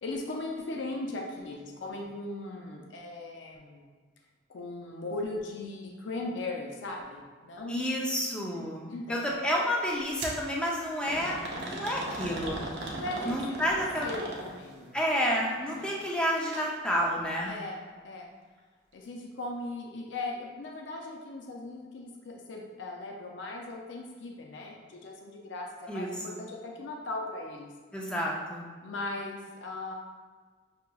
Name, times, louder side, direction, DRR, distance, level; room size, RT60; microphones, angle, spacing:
voice 1, 0.0-3.8 4.5-7.8 8.6-9.3 13.0-15.0 15.8-16.0 17.4-17.8 18.0-18.3 18.9-27.7 28.8-29.9, left 2 dB, 75° left, 0 dB, 0.5 m, -38 dB
voice 2, 7.7-12.6 13.2-14.1 14.9-17.5 25.9-26.4 27.9-28.7, equal, 5° left, -3 dB, 0.5 m, -30 dB
sound 1, 10.2-10.4 11.1-14.8 16.4-16.7 17.0-17.1 18.0-18.1, right 1 dB, 60° right, 0.7 m, -37 dB
6.0 x 2.8 x 2.3 m, 1.5 s
head